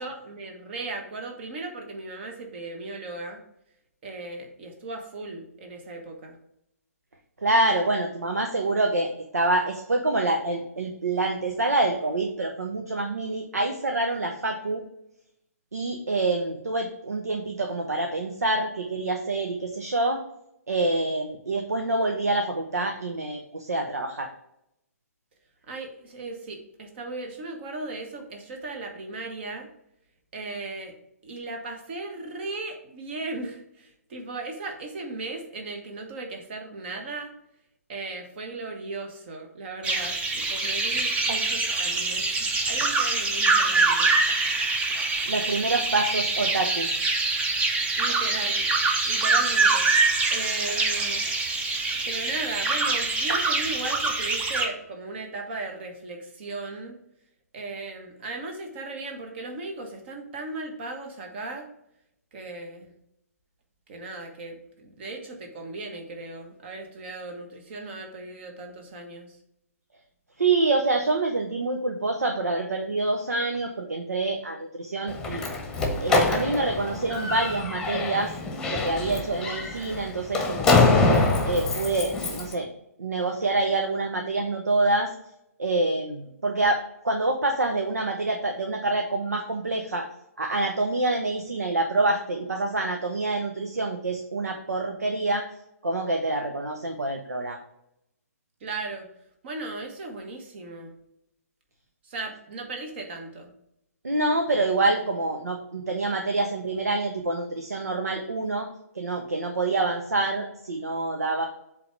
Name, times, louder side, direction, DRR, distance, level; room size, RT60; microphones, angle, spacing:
voice 1, 0.0-3.4 4.0-6.4 25.7-29.7 30.3-30.9 31.2-37.3 37.9-44.1 47.9-48.7 49.0-49.9 50.3-51.3 52.0-57.0 57.5-61.7 62.3-62.9 63.9-69.4 98.6-99.1 99.4-100.9 102.0-103.5, right 3 dB, 45° right, 4 dB, 1.4 m, -37 dB
voice 2, 7.4-14.8 15.7-20.2 20.7-24.3 45.3-46.9 70.4-75.4 76.0-78.3 78.7-80.9 81.5-82.7 83.0-85.1 85.6-86.8 87.0-90.1 90.4-95.4 95.8-97.6 104.0-108.7 108.9-111.4, right 2 dB, 80° right, 3 dB, 0.9 m, -26 dB
sound 1, 39.8-54.7, right 3 dB, 15° right, 0.7 m, -24 dB
Slam, 75.1-82.5, left 3 dB, 10° left, 1.1 m, -25 dB
7.8 x 3.5 x 4.8 m, 0.79 s
figure-of-eight pair, 130°, 9 cm